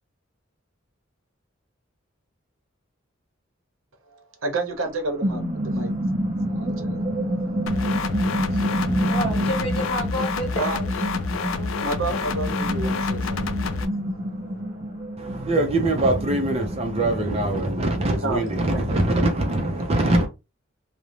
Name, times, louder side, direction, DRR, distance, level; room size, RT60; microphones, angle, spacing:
voice 1, 4.1-5.9 6.3-7.0 8.5-8.7 10.6-10.8 11.8-13.7 18.2-18.4 18.7-19.0, right 2 dB, 90° right, 0.7 m, -30 dB
sound 1, 4.7-19.0, equal, 50° right, 0.9 m, -28 dB
sound 2, 7.7-13.9, left 5 dB, 85° left, 0.4 m, -29 dB
voice 2, 9.1-10.9 11.3-12.4 13.7-13.8, equal, 30° left, 1.1 m, -31 dB
voice 3, 15.2-20.3, right 1 dB, 30° right, 0.5 m, -23 dB
2.5 x 2.0 x 3.0 m
head